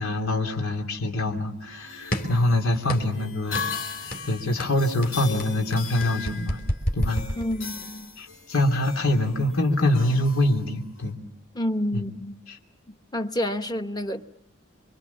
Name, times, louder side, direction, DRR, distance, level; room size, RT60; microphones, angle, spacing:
voice 1, 0.0-3.6 4.3-6.6 6.9-7.2 8.2-11.2 11.9-12.0 12.5-12.6, left 1 dB, 85° left, 3.2 m, -24 dB
sound 1, 1.6-11.1, left 6 dB, 65° left, 3.3 m, -38 dB
sound 2, 2.1-2.4 2.9-3.2 3.5-3.8 4.1-4.3 4.6-7.9, equal, 45° left, 3.7 m, -29 dB
voice 2, 7.4-8.1 11.5-12.4 13.1-14.2, left 1 dB, 20° left, 1.2 m, -29 dB
27.5 x 24.0 x 7.2 m
head